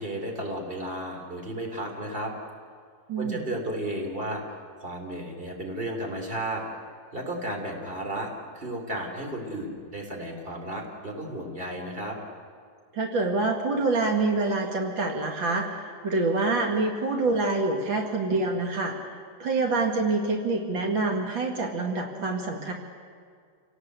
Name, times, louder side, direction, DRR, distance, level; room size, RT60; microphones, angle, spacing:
voice 1, 0.0-2.3 3.2-4.4 4.8-6.6 7.1-12.2, right 1 dB, 30° right, 2 dB, 3.8 m, -33 dB
voice 2, 3.1-3.5 12.9-19.0 19.4-22.7, right 3 dB, 80° right, 2 dB, 2.8 m, -26 dB
28.5 x 18.0 x 8.1 m, 2.1 s
omnidirectional pair, 2.0 m